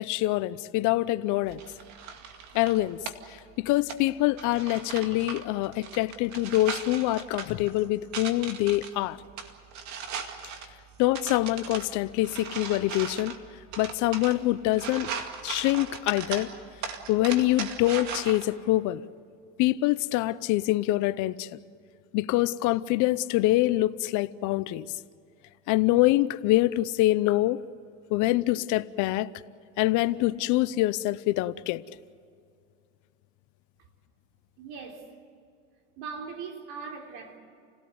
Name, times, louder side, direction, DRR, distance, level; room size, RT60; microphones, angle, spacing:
voice 1, 0.0-1.6 2.5-3.0 3.6-9.2 11.0-13.4 13.8-15.1 15.4-16.5 17.1-19.0 19.6-21.5 22.1-24.8 25.7-27.6 28.1-29.3 29.8-31.8, left 17 dB, 55° left, 0.8 m, -25 dB
sound 1, 1.5-18.4, right 6 dB, 50° right, 2.3 m, -39 dB
voice 2, 34.6-35.1 36.0-37.4, right 5 dB, 65° right, 4.0 m, -40 dB
29.0 x 17.5 x 8.0 m
supercardioid pair, 110°, 36 cm